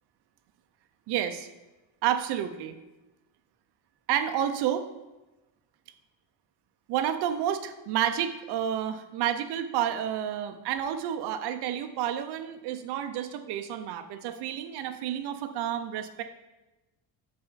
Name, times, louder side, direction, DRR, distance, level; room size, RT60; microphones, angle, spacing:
voice 1, 1.1-1.5 2.0-2.8 4.1-4.9 6.9-16.2, right 10 dB, 55° right, 8 dB, 0.6 m, -30 dB
6.5 x 4.3 x 3.9 m, 1.1 s
cardioid pair, 165°, 47 cm